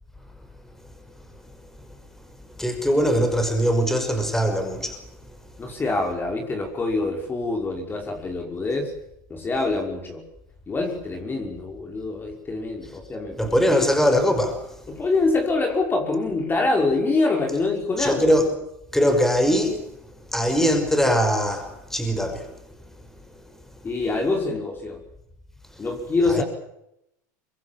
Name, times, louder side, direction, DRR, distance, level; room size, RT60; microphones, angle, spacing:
voice 1, 2.6-5.0 13.4-14.6 18.0-18.5 18.9-19.8 20.3-22.5 26.3-26.4, equal, 5° left, 5.9 m, -21 dB
voice 2, 5.6-8.9 9.3-10.2 10.7-13.6 14.9-18.2 23.8-25.0 25.8-26.4, left 3 dB, 20° left, 5.6 m, -25 dB
25.0 x 22.5 x 7.5 m
supercardioid pair, 110°, 10 cm